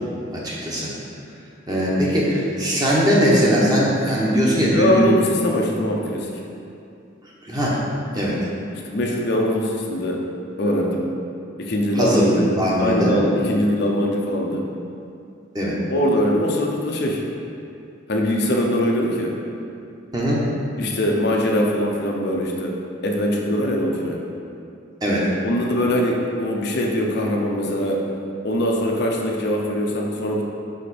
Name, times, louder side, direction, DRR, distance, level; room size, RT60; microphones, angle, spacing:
voice 1, 0.3-0.9 1.7-5.0 7.4-7.8 8.1-8.4 11.9-13.1 15.5-15.8 20.1-20.4 25.0-25.3, equal, 20° right, -6 dB, 1.1 m, -20 dB
voice 2, 4.7-6.3 8.9-10.2 10.6-11.1 11.6-12.3 12.8-14.6 15.9-17.2 18.1-19.4 20.8-22.7 23.0-24.2 25.4-28.0 28.4-30.4, left 1 dB, 60° left, 0 dB, 0.7 m, -22 dB
5.6 x 5.0 x 4.2 m, 2.5 s
head